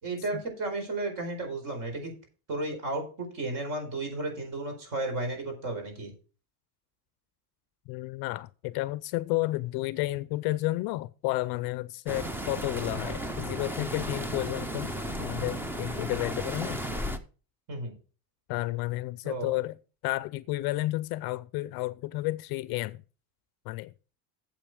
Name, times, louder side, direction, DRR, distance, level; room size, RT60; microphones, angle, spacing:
voice 1, 0.0-2.1 2.5-6.1 17.7-17.9 19.2-19.5, right 2 dB, 45° right, 4.5 m, -33 dB
voice 2, 7.9-16.8 18.5-19.8 20.0-23.0 23.7-23.9, left 19 dB, 55° left, 0.5 m, -32 dB
sound 1, 12.1-17.2, equal, 5° right, 0.4 m, -34 dB
8.9 x 7.7 x 4.8 m
cardioid pair, 150°, 45 cm